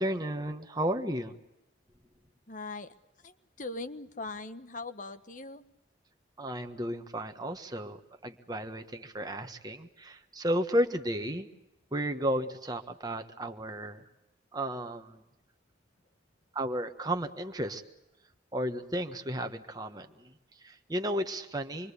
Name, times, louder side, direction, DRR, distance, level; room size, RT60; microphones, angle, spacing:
voice 1, 0.0-1.3 6.4-11.5 11.9-14.0 14.5-15.2 16.5-17.8 18.5-21.9, equal, 20° right, 6 dB, 1.4 m, -33 dB
voice 2, 2.5-2.9 3.2-5.6, left 3 dB, 45° left, 11 dB, 1.4 m, -40 dB
27.0 x 23.0 x 8.4 m, 0.88 s
head